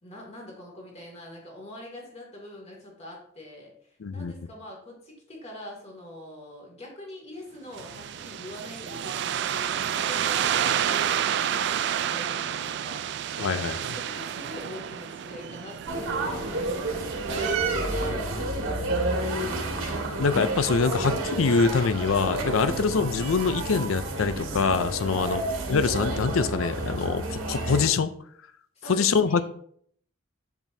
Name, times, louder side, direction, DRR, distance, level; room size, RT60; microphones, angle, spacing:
voice 1, 0.0-13.3 13.8-16.6 17.3-19.6 22.6-22.8 25.0-25.4 28.7-29.4, left 1 dB, 35° left, -2 dB, 2.4 m, -44 dB
voice 2, 4.0-4.3 13.4-13.8 20.2-25.4 25.7-28.1 28.9-29.4, left 5 dB, 90° left, 12 dB, 0.5 m, -24 dB
sound 1, 7.8-17.5, right 9 dB, 55° right, 0.3 m, -30 dB
sound 2, 15.9-27.9, right 2 dB, 85° right, 1.6 m, -30 dB
8.0 x 7.2 x 2.7 m, 0.63 s
head